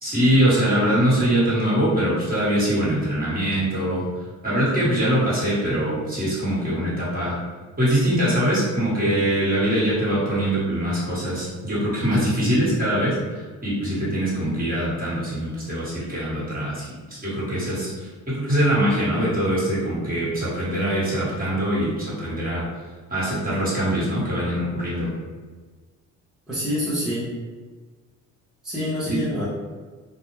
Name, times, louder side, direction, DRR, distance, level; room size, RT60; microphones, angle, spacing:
voice 1, 0.0-7.4 7.8-22.6 23.1-25.1 29.1-29.2, right 1 dB, 30° right, -8 dB, 1.4 m, -23 dB
voice 2, 26.5-27.3 28.6-29.4, left 1 dB, ahead, -11 dB, 0.8 m, -26 dB
2.4 x 2.2 x 3.1 m, 1.4 s
cardioid pair, 90°, 30 cm